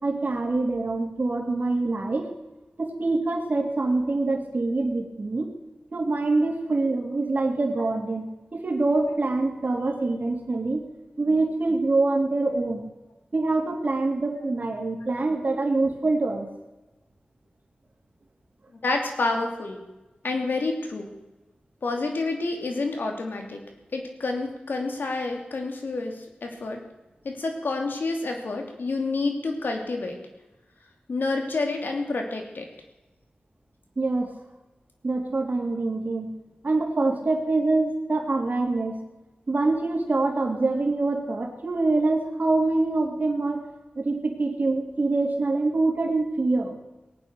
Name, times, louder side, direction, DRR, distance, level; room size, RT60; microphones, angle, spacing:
voice 1, 0.0-2.3 2.8-5.5 5.9-10.8 11.2-12.9 13.3-16.5 34.0-34.3 35.0-36.3 36.6-39.0 39.5-43.6 44.0-46.7, right 3 dB, 60° right, 1 dB, 2.9 m, -25 dB
voice 2, 18.8-19.8 20.2-21.1 21.8-23.6 23.9-26.8 27.2-30.2 31.1-32.7, left 3 dB, 85° left, 3 dB, 2.7 m, -28 dB
19.0 x 9.2 x 6.9 m, 1.0 s
wide cardioid pair, 60°, 3 cm